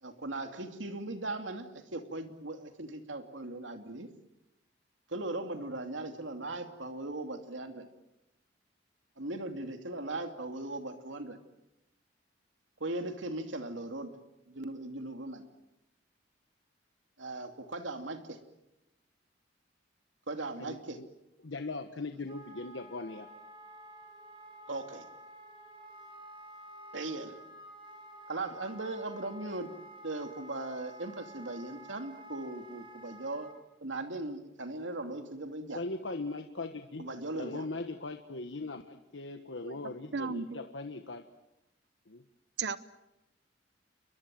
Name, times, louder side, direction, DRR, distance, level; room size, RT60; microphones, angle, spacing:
voice 1, 0.0-4.1 5.1-7.9 9.2-11.4 12.8-14.1 14.5-15.5 17.2-18.4 20.3-21.0 24.7-25.1 26.9-27.4 28.3-29.7 30.0-33.5 33.8-35.8 37.0-37.7, right 2 dB, 85° right, 6 dB, 2.7 m, -38 dB
voice 2, 20.6-21.1 21.4-23.3 35.7-37.1 37.3-41.2 42.1-42.2, left 3 dB, 75° left, 7 dB, 1.3 m, -39 dB
Wind instrument woodwind instrument, 22.3-33.6, right 1 dB, 30° right, 4.4 m, -51 dB
voice 3, 39.7-40.7 42.6-42.8, right 5 dB, 65° right, 14 dB, 0.9 m, -36 dB
29.5 x 22.5 x 7.7 m, 0.91 s
head